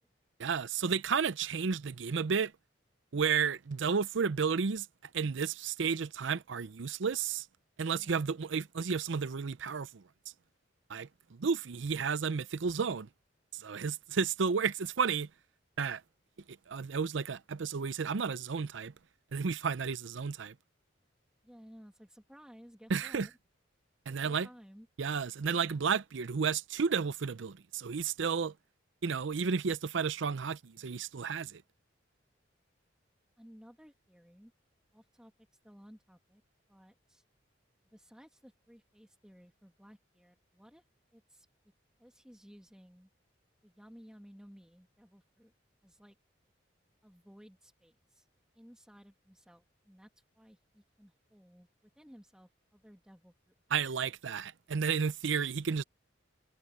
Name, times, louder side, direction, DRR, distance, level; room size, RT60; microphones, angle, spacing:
voice 1, 0.4-2.5 3.1-4.9 5.1-7.5 7.8-10.0 10.9-13.1 13.5-15.3 15.8-16.0 16.7-18.9 19.3-20.5 22.9-23.3 24.1-24.5 25.0-28.5 29.0-31.6 53.7-55.8, right 6 dB, 70° right, 0.5 m, -32 dB
voice 2, 8.0-8.3 21.4-23.3 24.1-24.9 33.4-34.5 34.9-35.3 35.6-36.4 36.7-37.2 37.9-40.9 41.1-41.5 42.0-43.1 43.6-45.5 45.8-46.2 47.0-48.3 48.5-53.8, equal, 5° right, 2.0 m, -57 dB
head